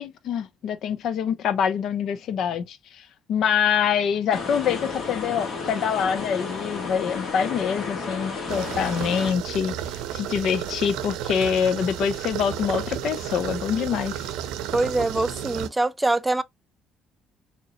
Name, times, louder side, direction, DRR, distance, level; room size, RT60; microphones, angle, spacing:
voice 1, 0.0-9.7 10.1-14.3, left 7 dB, 65° left, 0.6 m, -25 dB
sound 1, 4.3-9.3, left 4 dB, 50° left, 1.6 m, -32 dB
sound 2, 8.5-15.7, right 10 dB, 85° right, 0.6 m, -32 dB
voice 2, 14.7-16.4, right 2 dB, 10° right, 0.4 m, -23 dB
3.7 x 3.0 x 2.9 m
cardioid pair, 95°, 0 cm